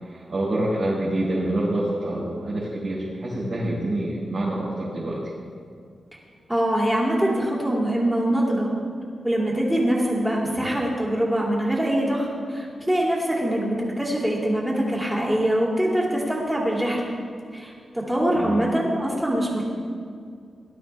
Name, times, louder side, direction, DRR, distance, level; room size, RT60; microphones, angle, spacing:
voice 1, 0.0-5.2 18.3-18.6, right 1 dB, 50° right, -9 dB, 4.1 m, -26 dB
voice 2, 6.5-8.7 9.2-17.0 17.5-19.6, right 1 dB, 5° right, -4 dB, 2.8 m, -23 dB
18.0 x 12.0 x 3.5 m, 2.2 s
wide cardioid pair, 130°, 0 cm